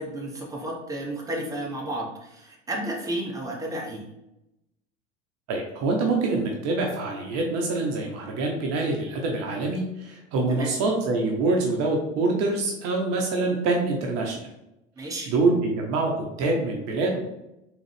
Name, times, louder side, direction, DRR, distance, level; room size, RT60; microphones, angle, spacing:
voice 1, 0.0-4.0 10.5-10.7 15.0-15.3, right 1 dB, 10° right, -2 dB, 1.0 m, -32 dB
voice 2, 5.5-14.5 15.3-17.2, right 3 dB, 45° right, 1 dB, 0.8 m, -25 dB
3.8 x 3.1 x 3.2 m, 0.89 s
figure-of-eight pair, 75°, 37 cm